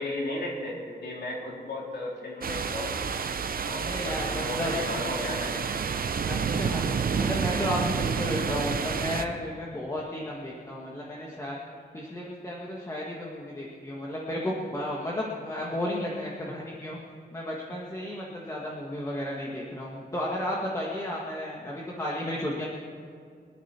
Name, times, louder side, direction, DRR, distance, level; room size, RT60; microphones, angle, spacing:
voice 1, 0.0-3.0 3.6-5.7, left 1 dB, 75° left, -4 dB, 3.8 m, -35 dB
sound 1, 2.4-9.2, right 6 dB, 55° right, 0.7 m, -29 dB
voice 2, 3.8-4.7 6.2-6.8 7.1-11.6 11.9-17.0 17.3-22.7, left 1 dB, 20° left, -3 dB, 1.5 m, -33 dB
24.5 x 10.0 x 4.4 m, 2.3 s
wide cardioid pair, 160°, 17 cm